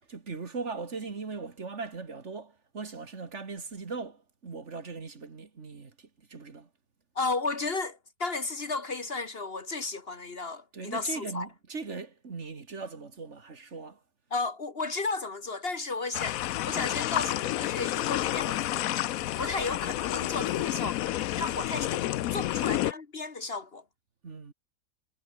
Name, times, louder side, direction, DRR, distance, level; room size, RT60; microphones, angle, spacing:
voice 1, 0.1-6.7 10.7-14.0 21.4-21.6 22.6-22.8 24.2-24.5, right 4 dB, 50° right, 2.2 m, -39 dB
voice 2, 7.1-11.5 14.3-19.0 19.4-23.8, left 3 dB, 40° left, 1.5 m, -34 dB
sound 1, 16.1-22.9, left 14 dB, 75° left, 1.0 m, -30 dB
omnidirectional pair, 1.6 m